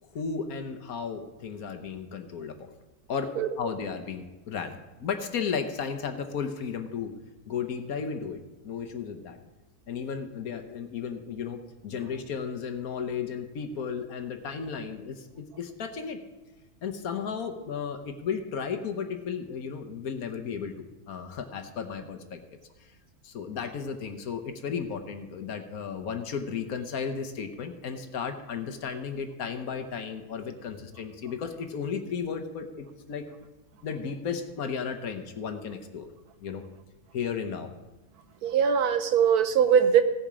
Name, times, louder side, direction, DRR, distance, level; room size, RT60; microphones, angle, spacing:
voice 1, 0.0-2.5 3.1-3.3 3.6-7.1 7.5-9.4 9.9-16.2 16.8-22.4 22.8-22.9 23.2-33.2 33.8-36.1 36.4-36.6 37.1-37.7, left 6 dB, 70° left, 7 dB, 1.4 m, -34 dB
voice 2, 38.4-40.0, right 8 dB, 80° right, 9 dB, 1.3 m, -21 dB
16.5 x 7.0 x 4.9 m, 1.1 s
omnidirectional pair, 1.6 m